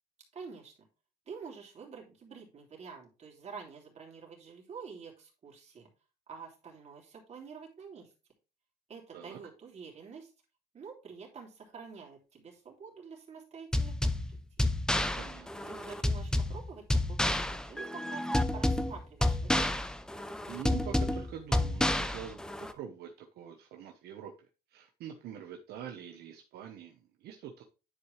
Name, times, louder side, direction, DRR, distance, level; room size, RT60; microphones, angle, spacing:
voice 1, 0.3-0.9 1.3-5.9 6.3-8.1 8.9-10.3 10.7-14.4 15.7-19.8, right 5 dB, 40° right, -1 dB, 3.2 m, -48 dB
sound 1, 13.7-22.7, left 1 dB, 5° left, 0.6 m, -30 dB
voice 2, 15.2-15.7 20.5-27.6, right 9 dB, 70° right, 3 dB, 1.1 m, -45 dB
10.0 x 4.9 x 3.3 m, 0.31 s
cardioid pair, 110°, 17 cm